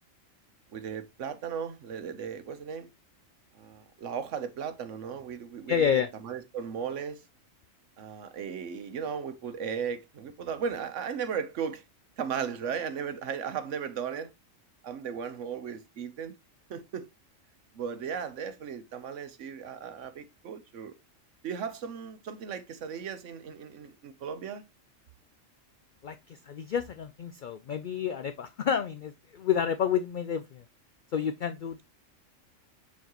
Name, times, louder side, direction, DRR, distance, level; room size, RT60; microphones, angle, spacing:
voice 1, 0.7-2.9 3.5-7.3 8.0-11.8 12.2-14.3 14.8-16.4 16.7-17.1 17.7-20.9 21.4-24.6, right 7 dB, 70° right, 1.2 m, -36 dB
voice 2, 5.7-6.1 26.0-30.6 31.1-31.8, left 8 dB, 75° left, 0.4 m, -29 dB
7.0 x 4.7 x 3.0 m
omnidirectional pair, 1.4 m